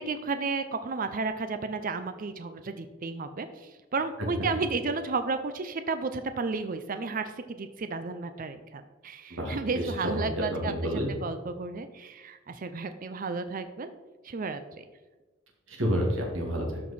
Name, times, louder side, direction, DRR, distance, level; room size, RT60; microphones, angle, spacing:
voice 1, 0.0-10.7 11.2-13.9 14.2-14.8, right 4 dB, 40° right, 9 dB, 0.5 m, -33 dB
voice 2, 9.3-11.1 15.7-16.8, equal, 65° right, 0 dB, 2.1 m, -30 dB
12.5 x 4.7 x 4.2 m, 1.2 s
head